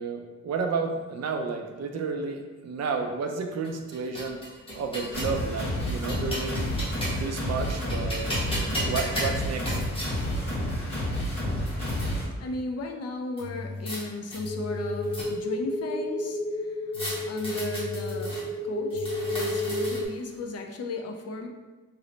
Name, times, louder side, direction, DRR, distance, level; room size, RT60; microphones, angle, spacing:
voice 1, 0.0-4.4 4.7-6.7 7.2-8.3 8.8-9.8, right 4 dB, 60° right, 4 dB, 0.4 m, -31 dB
sound 1, 3.6-5.4 5.9-7.3 7.7-10.1 10.9-11.0 11.2-12.1 13.4-14.0 14.3-15.6 16.9-18.4 18.9-20.2, equal, 20° left, 0.8 m, -35 dB
sound 2, 5.1-12.2, equal, 35° left, 1.4 m, -30 dB
voice 2, 12.4-17.0 17.3-21.5, left 2 dB, 60° left, 3 dB, 0.4 m, -36 dB
sound 3, 14.4-20.1, left 1 dB, ahead, 0.4 m, -31 dB
3.1 x 2.0 x 3.8 m, 1.2 s
wide cardioid pair, 150°, 29 cm